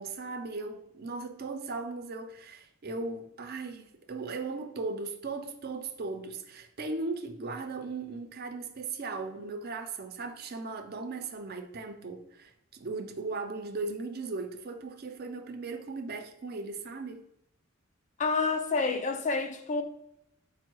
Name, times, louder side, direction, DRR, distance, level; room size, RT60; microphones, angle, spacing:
voice 1, 0.0-17.3, right 3 dB, 45° right, 0.4 m, -37 dB
voice 2, 18.2-19.8, left 4 dB, 35° left, 0.3 m, -28 dB
4.3 x 2.0 x 4.5 m
head